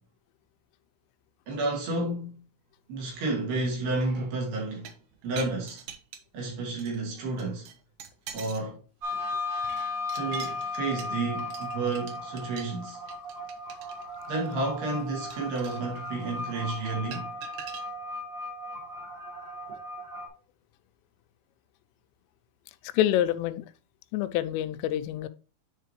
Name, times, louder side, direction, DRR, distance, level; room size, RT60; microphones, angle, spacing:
voice 1, 1.5-2.4 2.9-4.9 5.2-5.8 6.3-7.7 8.3-8.8 10.1-13.0 14.3-17.3, right 2 dB, 60° right, 4.2 m, -31 dB
sound 1, 4.6-6.4 6.8-7.0 7.4-8.7 9.0-17.9, right 8 dB, 85° right, 1.9 m, -45 dB
sound 2, 9.0-20.3, left 2 dB, 35° right, 3.4 m, -36 dB
voice 2, 22.8-23.7 24.1-25.3, left 12 dB, 90° left, 3.2 m, -27 dB
10.0 x 4.9 x 3.1 m
omnidirectional pair, 5.7 m